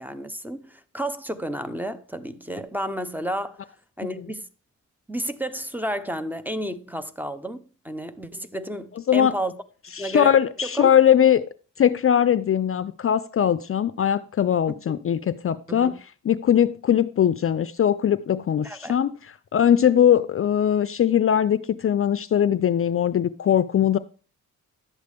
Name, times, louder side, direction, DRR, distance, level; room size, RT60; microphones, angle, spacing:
voice 1, 0.0-3.6 4.0-4.5 5.1-9.5 10.0-10.3 10.8-10.9 15.7-15.9 18.6-19.0, equal, 5° right, 0.7 m, -31 dB
voice 2, 10.0-11.4 11.8-16.0 16.2-19.1 19.5-24.0, left 9 dB, 45° left, 0.4 m, -20 dB
11.0 x 8.0 x 3.5 m
cardioid pair, 100°, 32 cm